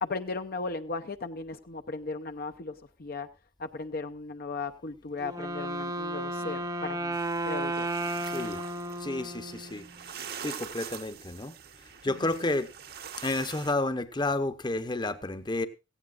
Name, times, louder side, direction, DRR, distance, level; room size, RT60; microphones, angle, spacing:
voice 1, 0.0-2.7 3.0-3.3 3.6-7.2 7.5-7.9 12.1-12.5, left 3 dB, 50° left, 0.7 m, -36 dB
Wind instrument woodwind instrument, 5.2-10.1, right 1 dB, 20° right, 0.7 m, -33 dB
sound 1, 7.1-13.7, right 8 dB, 55° right, 1.1 m, -44 dB
voice 2, 8.3-8.6 9.0-9.8 10.4-11.5 12.0-12.7 13.2-15.7, left 2 dB, 25° left, 0.9 m, -30 dB
17.5 x 15.5 x 2.5 m
head